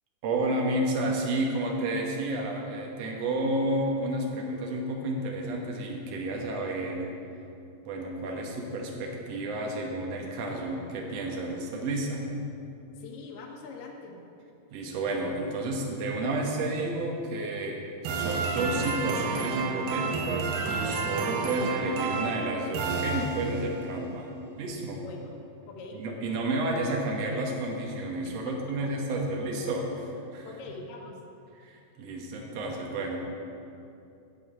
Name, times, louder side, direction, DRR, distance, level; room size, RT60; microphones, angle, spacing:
voice 1, 0.2-7.1 7.9-12.3 14.7-24.3 24.6-25.0 25.9-30.5 31.6-33.2, right 2 dB, 60° right, 0 dB, 2.1 m, -31 dB
voice 2, 12.9-14.2 21.4-21.6 25.0-25.4 25.7-26.0 28.5-28.6 29.1-29.2 30.5-31.2, left 4 dB, 85° left, -1 dB, 2.8 m, -43 dB
sound 1, 18.1-23.8, right 4 dB, 80° right, 2.3 m, -30 dB
11.0 x 4.8 x 8.3 m, 2.7 s
omnidirectional pair, 3.8 m